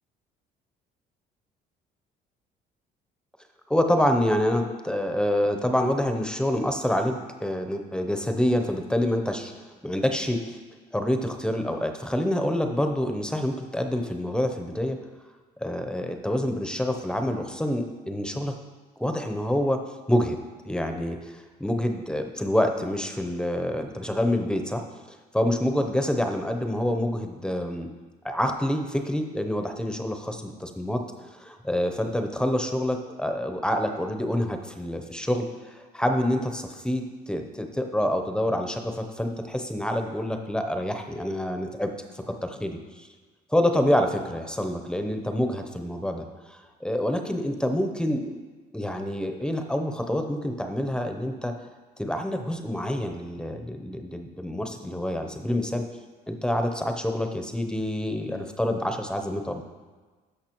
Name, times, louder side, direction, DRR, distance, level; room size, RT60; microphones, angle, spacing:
voice 1, 3.7-10.6 10.9-15.0 15.6-18.5 19.0-19.8 20.1-20.4 20.6-24.8 25.1-27.9 28.2-43.1 43.5-48.5 48.7-51.6 52.0-55.9 56.3-59.6, left 1 dB, 5° left, 5 dB, 0.6 m, -27 dB
13.0 x 5.7 x 3.0 m, 1.4 s
cardioid pair, 110°, 17 cm